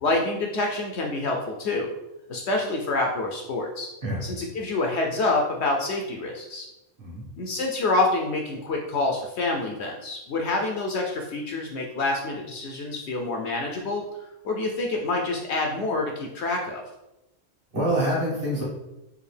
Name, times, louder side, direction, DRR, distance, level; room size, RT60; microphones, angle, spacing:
voice 1, 0.0-1.9 2.3-3.9 4.2-6.7 7.4-14.0 14.4-16.8, left 2 dB, 65° left, 1 dB, 0.8 m, -27 dB
voice 2, 17.7-18.6, right 1 dB, 45° right, -5 dB, 1.5 m, -26 dB
4.7 x 2.6 x 3.3 m, 0.93 s
omnidirectional pair, 1.4 m